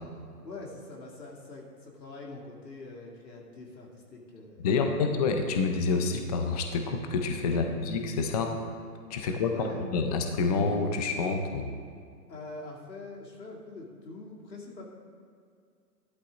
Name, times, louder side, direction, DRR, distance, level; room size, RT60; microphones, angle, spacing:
voice 1, 0.4-5.0 7.5-7.6 9.5-9.8 12.3-14.8, left 2 dB, 85° left, -2 dB, 2.8 m, -44 dB
voice 2, 4.6-8.6 9.1-9.6 9.9-11.7, left 4 dB, 25° left, 4 dB, 0.5 m, -28 dB
14.0 x 11.5 x 2.5 m, 2.2 s
hypercardioid pair, 135°, 49 cm